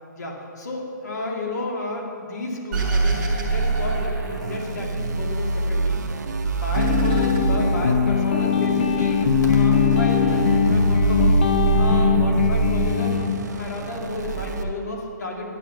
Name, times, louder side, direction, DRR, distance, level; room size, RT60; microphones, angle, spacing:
voice 1, 0.2-6.2 6.5-11.4 11.8-15.4, left 2 dB, 60° left, -1 dB, 2.5 m, -32 dB
sound 1, 2.7-5.1 5.4-6.2 6.5-8.1, right 1 dB, 10° right, 1.4 m, -37 dB
sound 2, 2.7-14.6, right 3 dB, 60° right, 1.1 m, -24 dB
sound 3, 6.8-13.3, left 8 dB, 30° left, 0.5 m, -21 dB
11.5 x 10.0 x 5.8 m, 2.6 s
hypercardioid pair, 170°, 10 cm